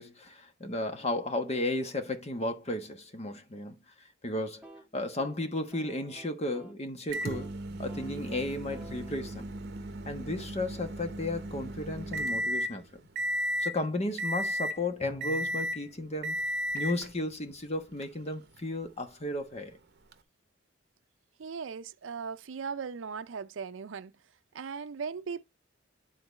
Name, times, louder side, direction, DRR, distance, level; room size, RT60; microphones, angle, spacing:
voice 1, 0.0-3.8 4.2-4.6 4.9-7.5 7.8-9.4 10.0-12.8 13.6-16.4 16.7-19.8, left 2 dB, 35° left, 1.2 m, -34 dB
sound 1, 4.5-6.9 7.2-7.6 7.9-11.7, right 1 dB, 5° right, 1.4 m, -53 dB
Microwave oven, 7.1-12.8 13.2-13.8 14.2-14.8 15.2-15.8 16.2-17.1 18.0-18.1 20.1-20.2, equal, 55° right, 0.9 m, -34 dB
Bowed string instrument, 15.0-15.9, left 4 dB, 10° left, 0.6 m, -47 dB
voice 2, 21.4-24.1 24.5-25.4, right 5 dB, 75° right, 0.5 m, -38 dB
10.5 x 4.0 x 4.1 m
head